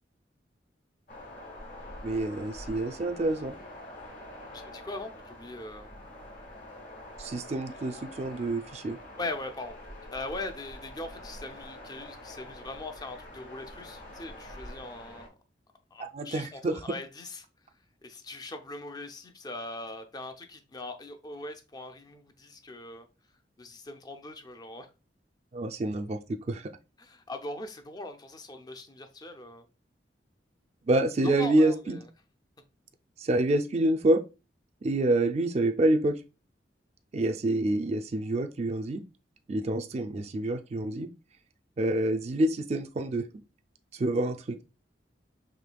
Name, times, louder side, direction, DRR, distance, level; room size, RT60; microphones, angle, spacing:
sound 1, 1.1-15.3, left 1 dB, 50° left, 1.2 m, -46 dB
voice 1, 2.0-3.6 7.2-9.0 16.1-16.7 25.5-26.7 30.9-32.0 33.2-34.2 34.8-36.2 37.1-39.0 39.5-41.1 41.8-43.2 43.9-44.6, right 1 dB, 40° right, 0.4 m, -27 dB
voice 2, 4.5-5.9 9.2-9.8 10.1-15.3 15.9-17.5 18.0-23.1 23.6-24.9 27.0-29.7 31.4-32.1, left 2 dB, 25° left, 0.5 m, -41 dB
5.0 x 3.2 x 2.2 m
head